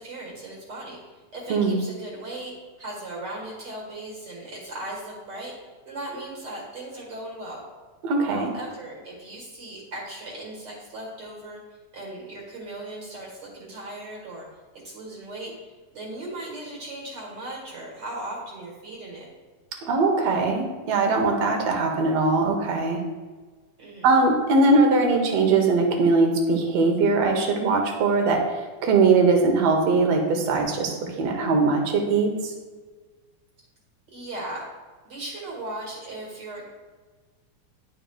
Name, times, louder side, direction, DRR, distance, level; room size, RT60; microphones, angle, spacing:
voice 1, 0.0-5.5 5.9-7.6 8.3-11.6 11.9-14.5 14.7-19.3 23.8-24.1 34.1-34.6 35.0-36.6, right 1 dB, 40° right, -3 dB, 2.0 m, -37 dB
voice 2, 8.0-8.5 19.8-23.0 24.0-32.5, right 3 dB, 65° right, 3 dB, 1.8 m, -21 dB
10.5 x 5.0 x 2.3 m, 1.3 s
omnidirectional pair, 3.6 m